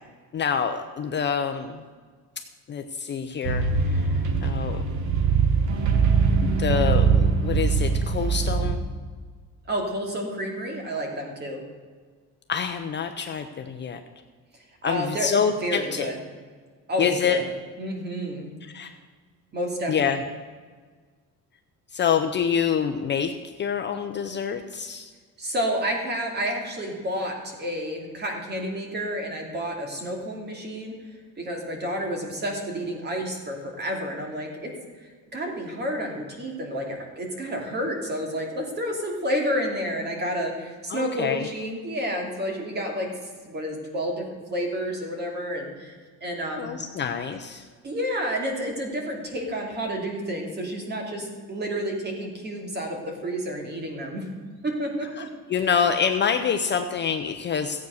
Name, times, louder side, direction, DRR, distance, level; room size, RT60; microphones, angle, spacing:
voice 1, 0.3-1.8 2.7-4.8 6.4-8.8 12.5-14.0 14.8-16.1 17.0-17.4 18.7-18.9 19.9-20.2 21.9-25.1 40.9-41.5 46.6-47.7 55.2-57.9, left 7 dB, 30° left, 6 dB, 0.6 m, -26 dB
sound 1, 3.4-8.8, right 5 dB, 55° right, 1.5 m, -22 dB
voice 2, 9.7-11.6 14.8-16.2 16.9-17.4 17.8-18.5 19.5-20.2 25.4-30.9 31.4-34.7 35.0-43.1 43.4-45.9 46.2-46.7 47.8-54.3 54.6-55.3, equal, 30° right, 2 dB, 2.6 m, -30 dB
15.0 x 8.4 x 6.4 m, 1.5 s
cardioid pair, 165°, 35 cm